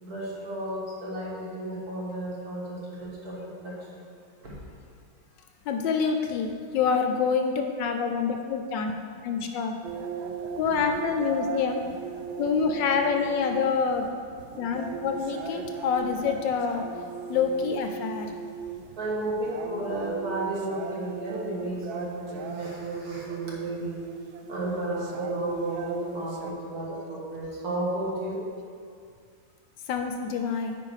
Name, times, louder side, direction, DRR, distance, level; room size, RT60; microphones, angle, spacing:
voice 1, 0.0-4.0 4.4-4.5 19.0-24.0 24.5-28.4, right 1 dB, 50° right, -5 dB, 1.9 m, -33 dB
voice 2, 5.7-9.0 9.2-9.8 10.6-11.8 12.4-14.1 14.6-16.8 17.3-18.3 29.9-30.8, left 6 dB, 75° left, 5 dB, 1.2 m, -26 dB
sound 1, 9.8-26.5, right 6 dB, 85° right, 1.4 m, -38 dB
9.3 x 4.6 x 4.8 m, 2.2 s
omnidirectional pair, 2.1 m